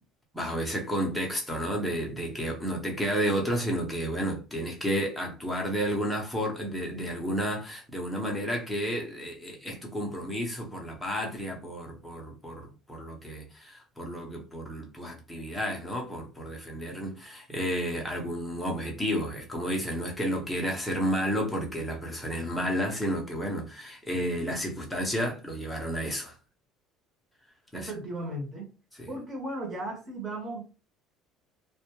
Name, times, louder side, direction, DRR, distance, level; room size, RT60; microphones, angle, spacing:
voice 1, 0.3-26.3 27.7-27.9 29.0-29.1, equal, ahead, 0.6 m, -31 dB
voice 2, 27.7-28.7 29.1-30.6, right 1 dB, 25° right, 0.9 m, -36 dB
2.1 x 2.0 x 2.9 m
cardioid pair, 145°, 0 cm